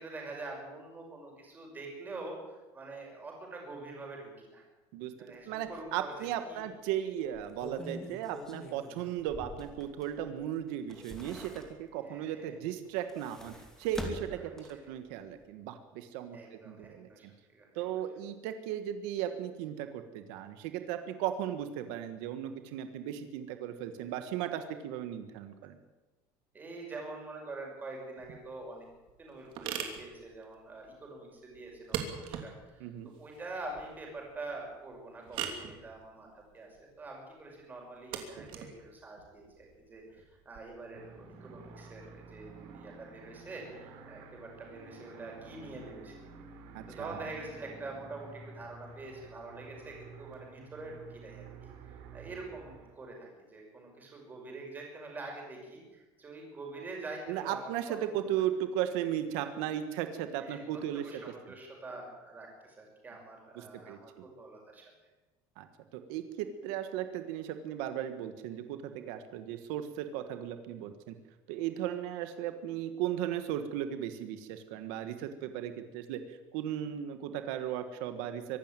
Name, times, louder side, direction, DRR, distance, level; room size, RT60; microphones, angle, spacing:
voice 1, 0.0-4.6 5.2-6.1 6.4-6.6 12.0-12.6 14.4-14.6 16.3-17.8 26.5-28.9 29.2-46.3 46.9-57.7 58.2-58.4 60.4-60.6 60.9-64.9, right 2 dB, 15° right, 0 dB, 5.9 m, -45 dB
voice 2, 4.9-17.3 17.8-25.8 32.8-33.1 46.7-47.3 57.3-61.0 63.6-64.2 65.6-65.7 65.9-71.2 71.5-78.6, right 10 dB, 85° right, 8 dB, 1.6 m, -36 dB
sound 1, 5.7-5.8 6.2-6.3 7.2-10.3 10.7-12.0 12.9-15.0 15.3-15.4, left 1 dB, 5° left, 2.7 m, -45 dB
sound 2, 28.2-40.6, right 8 dB, 55° right, 3.0 m, -43 dB
sound 3, 40.9-52.9, right 4 dB, 70° right, 4.9 m, -51 dB
24.0 x 12.5 x 9.1 m, 1.2 s
cardioid pair, 170°, 10 cm